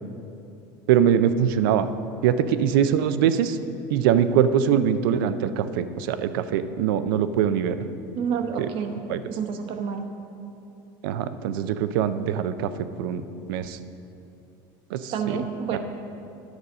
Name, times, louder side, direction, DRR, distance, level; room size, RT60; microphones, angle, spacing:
voice 1, 0.9-1.9 2.2-3.6 3.9-7.8 8.6-8.7 9.1-9.2 11.0-13.2 13.5-13.8 14.9-15.4 15.7-15.8, right 9 dB, 90° right, 12 dB, 0.4 m, -23 dB
voice 2, 8.1-9.0 9.3-10.0 15.1-15.8, right 7 dB, 55° right, 5 dB, 0.9 m, -28 dB
10.5 x 4.1 x 6.3 m, 2.8 s
supercardioid pair, 120°, 11 cm